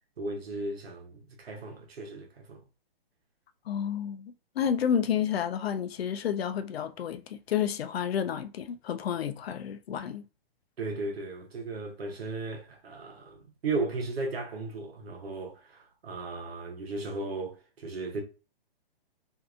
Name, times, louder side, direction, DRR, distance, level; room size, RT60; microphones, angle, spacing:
voice 1, 0.2-2.6 10.8-18.2, right 3 dB, 90° right, 0.9 m, -36 dB
voice 2, 3.7-10.2, left 8 dB, 85° left, 0.5 m, -30 dB
2.7 x 2.5 x 2.3 m
hypercardioid pair, 160°, 30 cm